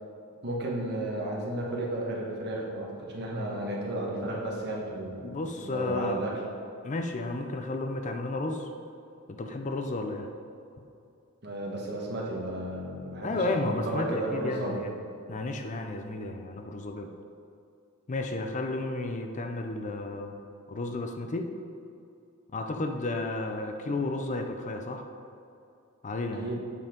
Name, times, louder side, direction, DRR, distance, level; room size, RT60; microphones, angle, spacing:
voice 1, 0.4-6.3 11.4-14.8 26.4-26.6, right 1 dB, 50° right, -2 dB, 1.5 m, -33 dB
voice 2, 5.2-6.2 6.8-8.7 9.3-10.3 13.2-14.9 15.3-17.1 18.1-20.4 20.7-21.5 22.5-25.1 26.0-26.5, left 2 dB, 35° left, 5 dB, 0.5 m, -32 dB
8.3 x 5.5 x 5.2 m, 2.5 s
head